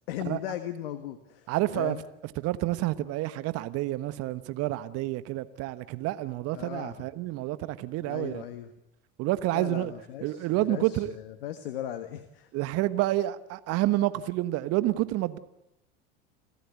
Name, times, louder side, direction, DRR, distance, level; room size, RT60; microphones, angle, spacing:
voice 1, 0.1-1.5 1.7-2.0 6.5-7.1 8.1-8.7 9.5-12.5, left 11 dB, 75° left, 1.5 m, -37 dB
voice 2, 1.5-2.0 2.4-8.4 9.2-9.9 10.2-11.1 12.5-15.4, right 16 dB, 55° right, 1.3 m, -29 dB
28.5 x 15.0 x 8.4 m
hypercardioid pair, 80°, 30 cm